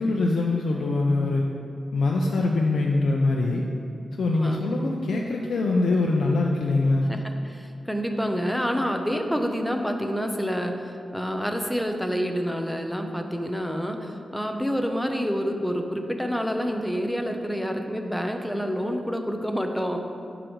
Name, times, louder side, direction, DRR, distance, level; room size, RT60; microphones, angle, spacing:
voice 1, 0.0-1.4 1.9-3.6 4.2-7.1, left 2 dB, 85° left, -1 dB, 0.5 m, -23 dB
voice 2, 7.1-20.0, equal, ahead, 4 dB, 0.6 m, -28 dB
11.5 x 4.9 x 3.1 m, 2.6 s
wide cardioid pair, 100°, 0 cm